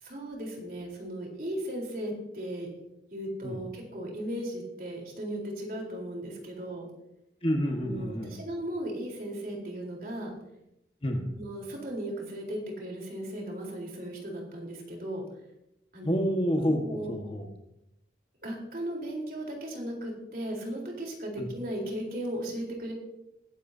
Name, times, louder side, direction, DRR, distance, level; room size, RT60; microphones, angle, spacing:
voice 1, 0.0-2.7 3.1-6.9 7.8-10.3 11.3-15.2 15.9-16.2 16.7-17.2 18.4-22.9, right 1 dB, 50° right, -1 dB, 4.1 m, -36 dB
voice 2, 7.4-8.4 11.0-11.2 16.0-17.5 21.4-21.5, equal, 30° left, 3 dB, 1.6 m, -28 dB
21.5 x 11.5 x 2.8 m, 0.85 s
head